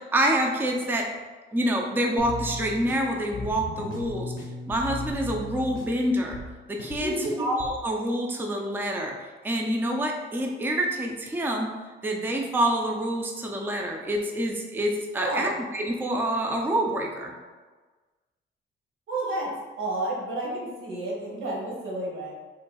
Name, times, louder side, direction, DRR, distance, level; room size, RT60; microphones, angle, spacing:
voice 1, 0.1-1.1 1.5-4.3 4.7-6.4 6.7-9.2 9.4-11.7 12.0-17.3, right 1 dB, 10° right, 1 dB, 0.4 m, -27 dB
sound 1, 2.2-7.8, left 2 dB, 90° left, 0.6 m, -37 dB
voice 2, 7.0-7.3 15.1-15.5 19.1-19.5 19.8-22.3, right 2 dB, 80° right, -4 dB, 1.3 m, -30 dB
4.3 x 3.0 x 2.3 m, 1.4 s
cardioid pair, 90°, 20 cm